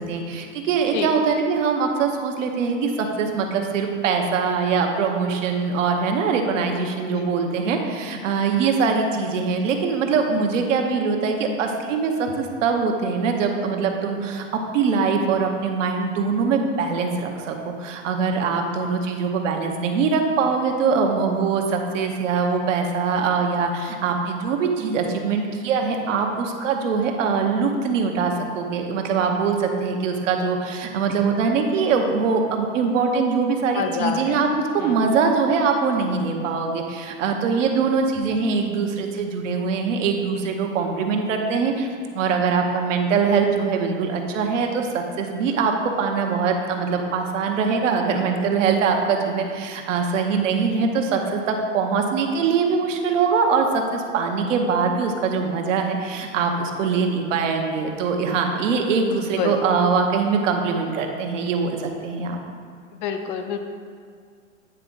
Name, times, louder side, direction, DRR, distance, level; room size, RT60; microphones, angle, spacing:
voice 1, 0.0-14.4 14.7-34.5 34.7-41.9 42.1-62.4, right 5 dB, 70° right, 3 dB, 0.9 m, -22 dB
voice 2, 33.7-34.4 34.8-35.0 59.1-59.6 63.0-63.6, left 6 dB, 40° left, 6 dB, 0.5 m, -27 dB
8.9 x 3.4 x 3.9 m, 2.1 s
hypercardioid pair, 135°, 39 cm